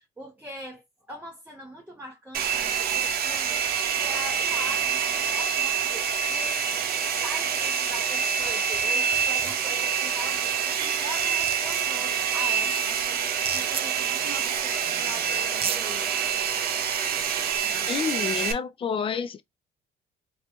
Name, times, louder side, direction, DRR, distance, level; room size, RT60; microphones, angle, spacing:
voice 1, 0.0-16.1, equal, 10° right, 1.1 m, -42 dB
Domestic sounds home sounds, 2.3-18.5, right 7 dB, 65° right, 0.8 m, -26 dB
sound 1, 8.4-8.8 9.1-9.5 10.7-10.8 11.1-12.0 13.3-13.8 15.0-15.1 15.5-15.8, right 7 dB, 35° right, 0.5 m, -33 dB
voice 2, 17.8-19.4, left 6 dB, 30° left, 0.5 m, -29 dB
3.4 x 2.6 x 3.1 m
cardioid pair, 110°, 17 cm